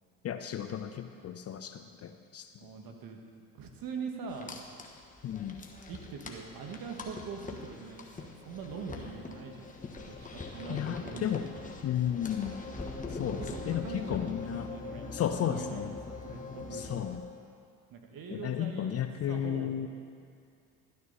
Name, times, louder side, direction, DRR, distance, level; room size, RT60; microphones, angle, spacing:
voice 1, 0.2-2.5 5.2-5.6 10.7-11.4 11.8-12.6 13.1-14.7 15.1-16.0 16.7-17.2 18.3-19.9, left 10 dB, 35° left, 8 dB, 0.6 m, -33 dB
voice 2, 2.6-3.2 3.5-4.5 5.9-11.3 13.2-17.0 17.9-19.0 19.3-19.9, right 5 dB, 50° right, 3 dB, 1.7 m, -43 dB
sound 1, 4.3-17.2, left 3 dB, 15° left, 1.3 m, -43 dB
12.5 x 9.4 x 4.1 m, 2.3 s
hypercardioid pair, 70°, 45 cm